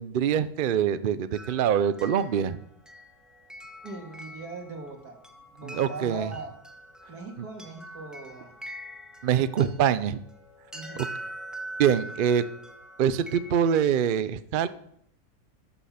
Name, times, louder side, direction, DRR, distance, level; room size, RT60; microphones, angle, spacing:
voice 1, 0.0-2.6 5.6-6.3 9.2-10.2 11.0-11.1 11.8-12.4 13.0-14.7, right 8 dB, 65° right, 14 dB, 0.5 m, -24 dB
sound 1, 1.3-13.9, right 1 dB, ahead, 1.0 m, -44 dB
voice 2, 3.8-6.5 7.1-8.6 9.5-9.7 10.7-11.1, right 3 dB, 85° right, 3 dB, 2.5 m, -40 dB
13.5 x 6.8 x 5.7 m, 0.69 s
omnidirectional pair, 1.6 m